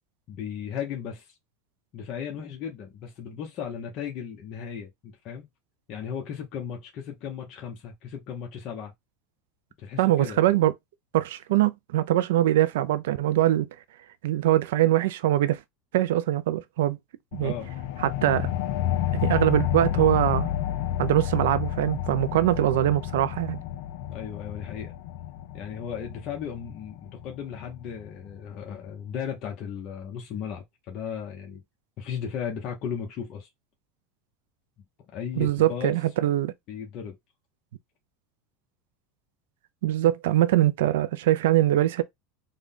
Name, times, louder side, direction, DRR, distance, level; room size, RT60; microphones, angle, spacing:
voice 1, 0.3-1.3 1.9-5.4 5.9-8.9 9.8-10.4 17.4-17.7 22.3-22.5 24.1-24.9 25.5-31.6 32.0-33.5 35.1-36.3 36.7-37.2, left 8 dB, 45° left, 0.8 m, -36 dB
voice 2, 10.0-10.7 11.1-13.7 14.2-15.6 15.9-17.0 17.3-17.5 18.0-18.5 19.1-20.5 21.0-23.6 35.4-36.5 39.8-42.0, right 13 dB, 80° right, 0.4 m, -22 dB
sound 1, 17.3-28.4, left 11 dB, 70° left, 0.4 m, -31 dB
3.6 x 2.2 x 3.6 m
supercardioid pair, 125°, 0 cm